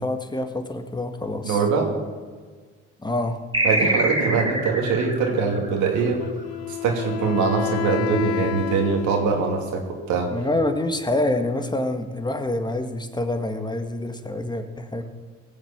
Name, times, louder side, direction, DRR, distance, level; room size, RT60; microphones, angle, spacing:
voice 1, 0.0-1.6 3.0-3.4 10.3-15.0, left 1 dB, 15° left, 7 dB, 1.8 m, -26 dB
voice 2, 1.4-1.9 3.6-6.2 6.7-10.3, right 5 dB, 80° right, 2 dB, 2.7 m, -23 dB
sound 1, 3.5-6.5, right 1 dB, 15° right, 3.7 m, -25 dB
Wind instrument woodwind instrument, 6.2-9.8, left 14 dB, 60° left, 1.0 m, -30 dB
18.0 x 7.6 x 7.4 m, 1.5 s
supercardioid pair, 65°, 29 cm